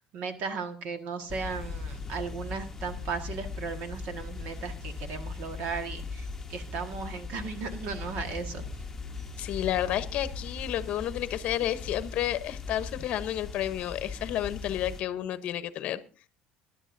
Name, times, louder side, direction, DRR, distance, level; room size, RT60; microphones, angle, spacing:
voice 1, 0.0-8.6, right 5 dB, 55° right, 7 dB, 1.5 m, -36 dB
sound 1, 1.3-15.0, left 4 dB, 10° left, 1.0 m, -39 dB
voice 2, 9.4-16.0, left 12 dB, 50° left, 12 dB, 0.9 m, -31 dB
21.5 x 11.0 x 2.6 m, 0.36 s
cardioid pair, 160°, 3 cm